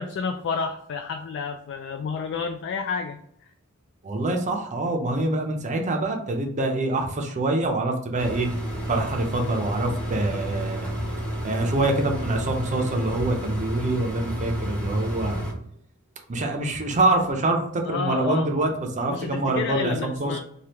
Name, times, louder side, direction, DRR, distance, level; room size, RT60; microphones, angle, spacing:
voice 1, 0.0-3.2 17.9-18.5 19.1-20.4, left 5 dB, 55° left, 5 dB, 0.3 m, -30 dB
voice 2, 4.0-8.5 8.9-10.9 11.4-15.5 16.3-18.7 19.0-20.4, right 2 dB, 35° right, 3 dB, 0.5 m, -25 dB
sound 1, 8.2-15.5, equal, 5° left, 0.7 m, -30 dB
3.3 x 2.3 x 2.8 m, 0.68 s
head